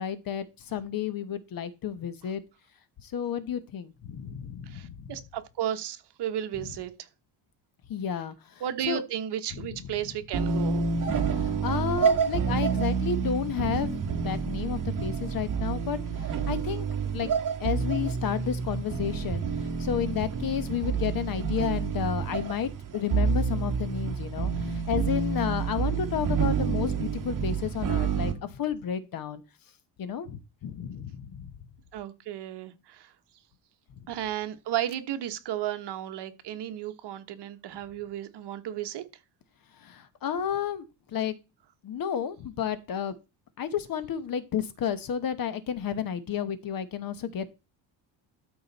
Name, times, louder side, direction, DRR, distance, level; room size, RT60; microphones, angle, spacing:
voice 1, 0.0-2.4 3.0-5.2 6.6-6.7 7.9-9.0 9.5-10.0 11.2-17.3 17.6-29.4 30.0-31.5 34.0-34.1 39.7-41.3 41.8-43.2 43.6-47.5, left 8 dB, 50° left, 1.1 m, -32 dB
voice 2, 4.7-6.9 8.6-10.9 31.9-33.1 34.1-39.0, right 11 dB, 60° right, 1.2 m, -34 dB
sound 1, 10.3-28.3, right 6 dB, 40° right, 1.8 m, -28 dB
13.0 x 5.1 x 4.1 m
cardioid pair, 150°, 46 cm